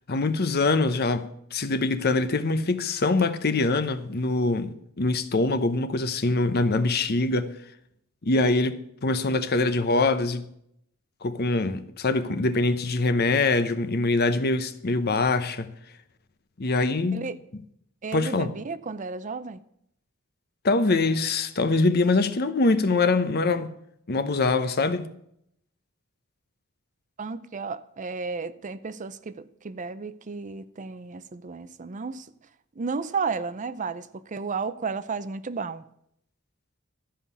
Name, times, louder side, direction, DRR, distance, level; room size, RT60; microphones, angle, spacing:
voice 1, 0.1-7.6 8.2-10.5 11.2-15.7 16.6-17.3 18.1-18.5 20.6-23.7 24.1-25.1, left 3 dB, 50° left, 0.8 m, -24 dB
voice 2, 18.0-19.6 27.2-32.3 32.8-35.8, right 4 dB, 35° right, 0.5 m, -33 dB
13.0 x 5.7 x 8.3 m
head